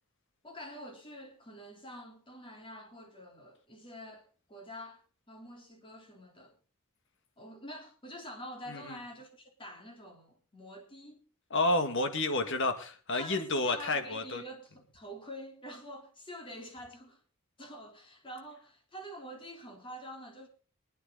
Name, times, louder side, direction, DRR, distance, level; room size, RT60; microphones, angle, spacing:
voice 1, 0.4-6.6 7.4-11.2 12.4-12.6 13.1-17.2 17.6-20.5, equal, 25° left, 3.4 m, -47 dB
voice 2, 8.7-9.0 11.5-14.4, left 2 dB, 60° left, 1.9 m, -30 dB
23.0 x 9.5 x 3.9 m
head